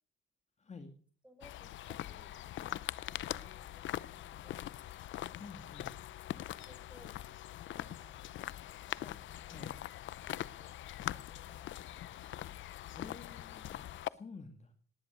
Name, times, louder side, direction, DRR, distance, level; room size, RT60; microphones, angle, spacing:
voice 1, 0.6-0.9 5.4-5.9 9.5-9.8 12.9-14.7, left 4 dB, 35° left, 7 dB, 2.3 m, -50 dB
voice 2, 1.2-4.7 6.3-7.2 7.7-8.5 8.9-9.7 10.3-10.8 11.1-11.7, equal, 5° right, 7 dB, 6.1 m, -62 dB
sound 1, 1.4-14.1, left 13 dB, 70° left, 0.7 m, -42 dB
19.0 x 10.5 x 6.5 m, 0.43 s
cardioid pair, 90°, 20 cm